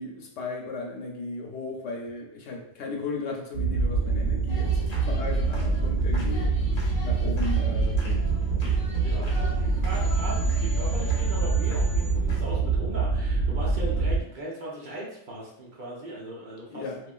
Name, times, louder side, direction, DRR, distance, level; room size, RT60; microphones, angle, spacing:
voice 1, 0.0-6.5 7.0-8.3 16.7-17.0, left 3 dB, 80° left, 0 dB, 0.9 m, -35 dB
sound 1, 3.5-14.2, right 4 dB, 80° right, 1.0 m, -25 dB
sound 2, 4.5-12.6, right 1 dB, 40° left, 0.7 m, -41 dB
voice 2, 9.0-17.1, right 1 dB, 50° right, -5 dB, 0.8 m, -38 dB
3.0 x 2.4 x 2.3 m, 0.72 s
omnidirectional pair, 1.2 m